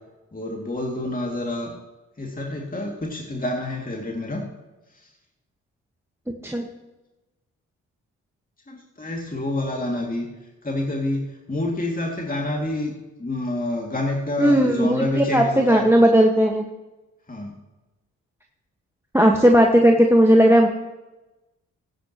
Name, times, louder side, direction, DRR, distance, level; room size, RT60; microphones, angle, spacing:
voice 1, 0.3-1.7 2.2-4.4 4.9-5.1 8.7-10.3 10.6-12.9 13.2-15.8 17.3-17.5, left 1 dB, 20° left, -1 dB, 2.4 m, -28 dB
voice 2, 14.4-16.7 19.1-20.7, equal, 5° right, 3 dB, 1.4 m, -16 dB
16.0 x 10.0 x 3.0 m, 1.1 s
hypercardioid pair, 40°, 39 cm